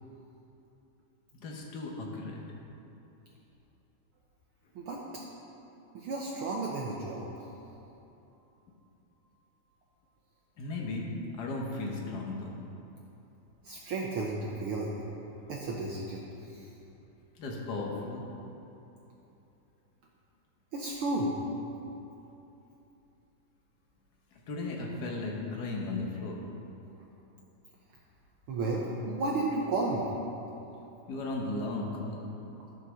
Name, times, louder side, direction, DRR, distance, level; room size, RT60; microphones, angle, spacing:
voice 1, 1.4-2.4 10.6-12.6 17.4-18.2 24.5-26.4 31.1-32.2, left 2 dB, 70° left, -1 dB, 0.9 m, -35 dB
voice 2, 5.9-7.5 13.6-15.0 15.5-16.7 20.7-21.4 28.5-30.1, right 2 dB, 80° right, -2 dB, 1.2 m, -33 dB
12.5 x 5.5 x 6.3 m, 2.9 s
omnidirectional pair, 3.5 m